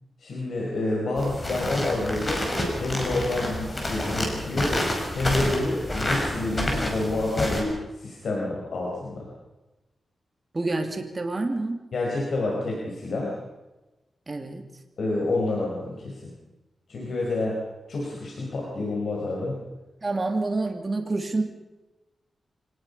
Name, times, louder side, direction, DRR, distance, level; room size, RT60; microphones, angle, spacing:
voice 1, 0.2-2.4 2.8-4.8 5.1-9.3 11.9-13.3 15.0-16.3 16.9-17.5 17.9-19.6, left 2 dB, 70° left, -3 dB, 5.3 m, -28 dB
sound 1, 1.2-7.6, left 1 dB, 25° left, 5.4 m, -28 dB
voice 2, 10.5-11.8 14.3-14.7 20.0-21.4, right 2 dB, 30° right, 4 dB, 2.7 m, -27 dB
25.0 x 18.5 x 5.6 m, 1.1 s
wide cardioid pair, 100°, 0 cm